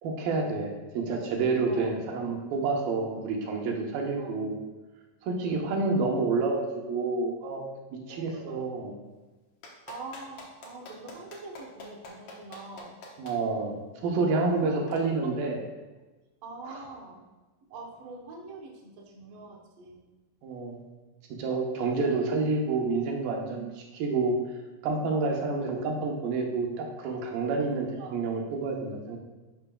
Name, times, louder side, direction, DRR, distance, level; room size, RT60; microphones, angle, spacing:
voice 1, 0.0-4.6 5.2-8.9 13.2-15.6 16.6-16.8 20.4-20.9 21.4-24.3 24.8-27.9 28.1-29.2, right 3 dB, 80° right, 0 dB, 2.8 m, -29 dB
voice 2, 5.4-5.9 8.1-8.7 9.9-13.0 14.4-14.8 15.1-15.3 16.4-17.2 17.7-20.0 27.6-27.7 28.0-28.2, right 3 dB, 65° right, -1 dB, 1.7 m, -44 dB
Clapping, 9.6-13.3 14.9-15.0, left 2 dB, 65° left, 1.5 m, -45 dB
11.5 x 5.9 x 2.3 m, 1.2 s
omnidirectional pair, 4.1 m